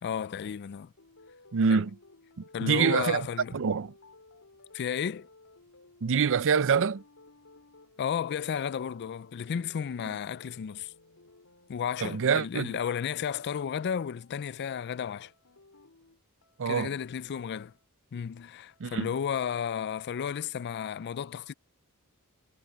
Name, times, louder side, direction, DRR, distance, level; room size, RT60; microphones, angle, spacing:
voice 1, 0.0-0.9 1.7-1.8 2.5-3.5 4.7-5.3 8.0-10.9 11.7-15.3 16.7-17.7 18.1-21.5, left 7 dB, 50° left, 0.4 m, -33 dB
sound 1, 1.0-19.3, left 3 dB, 70° left, 4.2 m, -57 dB
voice 2, 1.5-2.0 2.6-3.3 3.5-3.9 6.0-7.0 12.0-12.7 16.6-16.9 18.8-19.1, right 6 dB, 60° right, 0.5 m, -25 dB
head